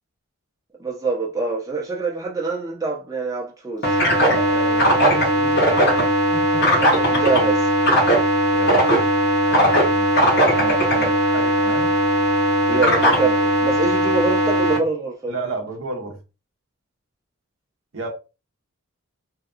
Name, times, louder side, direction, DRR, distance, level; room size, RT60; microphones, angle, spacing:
voice 1, 0.8-3.9 6.8-7.7 12.7-15.3, right 3 dB, 15° right, 0.6 m, -25 dB
sound 1, 3.8-14.8, equal, 50° left, 0.9 m, -18 dB
voice 2, 4.2-5.9 6.3-6.7 8.5-9.1 9.5-12.0 12.7-13.4 15.3-16.2 17.9-18.1, right 2 dB, 65° right, 0.7 m, -32 dB
2.7 x 2.3 x 2.4 m
head